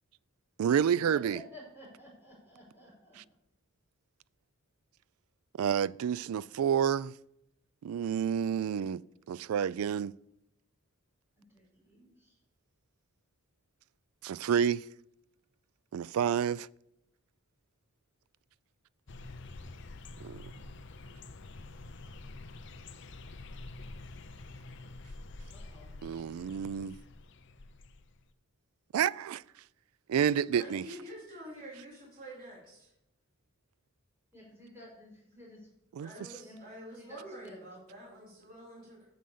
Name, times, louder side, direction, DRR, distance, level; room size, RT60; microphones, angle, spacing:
voice 1, 0.6-1.4 5.6-7.1 7.8-9.0 9.3-10.2 14.2-14.8 15.9-16.7 20.2-20.4 26.0-27.0 28.9-29.4 30.1-30.9 35.9-36.1, right 8 dB, 90° right, 0.3 m, -29 dB
voice 2, 1.1-3.2 11.4-12.4 25.5-25.9 34.3-35.7 36.1-36.6 37.0-37.6, left 1 dB, 10° right, 4.9 m, -53 dB
sound 1, 19.1-28.2, left 2 dB, 55° left, 0.7 m, -47 dB
voice 3, 30.5-32.9 36.0-39.1, right 1 dB, 40° right, 3.8 m, -47 dB
9.1 x 6.4 x 6.9 m
head